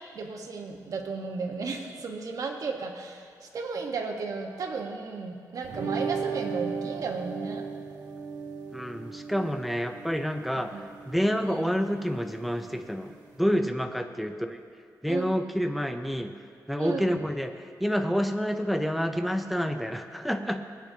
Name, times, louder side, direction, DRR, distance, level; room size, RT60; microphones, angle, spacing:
voice 1, 0.1-3.3 3.5-7.7 10.7-10.8 11.4-11.7 15.1-15.3 16.8-17.1, right 4 dB, 60° right, 2 dB, 1.1 m, -34 dB
sound 1, 5.6-13.4, right 5 dB, 85° right, 1.5 m, -37 dB
voice 2, 8.7-14.6 15.0-16.3 16.7-20.6, equal, ahead, 6 dB, 0.5 m, -28 dB
19.5 x 8.8 x 2.7 m, 2.4 s
wide cardioid pair, 155°, 7 cm